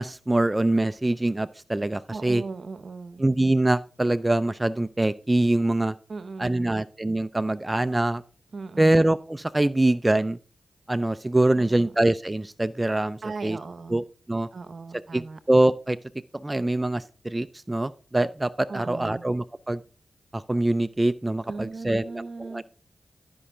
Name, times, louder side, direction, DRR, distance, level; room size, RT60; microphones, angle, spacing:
voice 1, 0.0-2.4 3.2-5.9 6.4-8.2 8.8-10.4 10.9-13.6 13.9-14.0 14.3-14.5 15.1-15.2 15.5-16.0 16.4-19.8 20.3-22.6, right 1 dB, 25° right, 13 dB, 0.4 m, -24 dB
voice 2, 2.1-3.3 6.1-6.8 8.5-9.0 11.5-12.0 13.2-14.0 14.5-15.4 18.7-19.3 21.4-22.6, right 4 dB, 65° right, 14 dB, 0.8 m, -38 dB
12.5 x 5.5 x 3.6 m, 0.37 s
cardioid pair, 40°, 0 cm